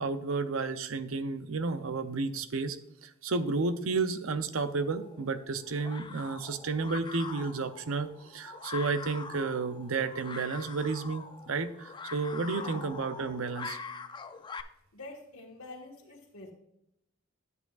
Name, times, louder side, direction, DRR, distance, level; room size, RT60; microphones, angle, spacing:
voice 1, 0.0-2.8 3.0-13.8, right 4 dB, 75° right, 10 dB, 0.6 m, -32 dB
sound 1, 4.7-14.6, left 5 dB, 20° left, 0.3 m, -44 dB
voice 2, 12.4-12.8 14.9-16.5, left 2 dB, 90° left, -1 dB, 1.4 m, -47 dB
10.5 x 8.1 x 2.4 m, 0.79 s
head